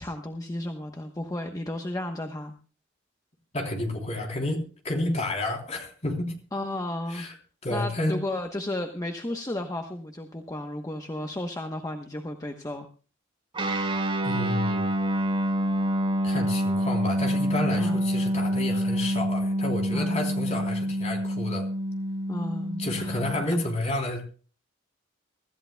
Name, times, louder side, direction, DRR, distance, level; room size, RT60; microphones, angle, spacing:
voice 1, 0.0-2.5 6.5-7.3 7.7-12.9 17.8-18.0 19.9-20.2 22.3-23.2, left 1 dB, 20° left, 1.0 m, -33 dB
voice 2, 3.5-6.3 7.1-7.3 7.6-8.2 14.2-14.9 16.2-21.7 22.8-24.2, left 1 dB, 35° left, 3.4 m, -30 dB
Guitar, 13.5-23.4, equal, 25° right, 4.8 m, -27 dB
24.0 x 14.0 x 2.3 m
head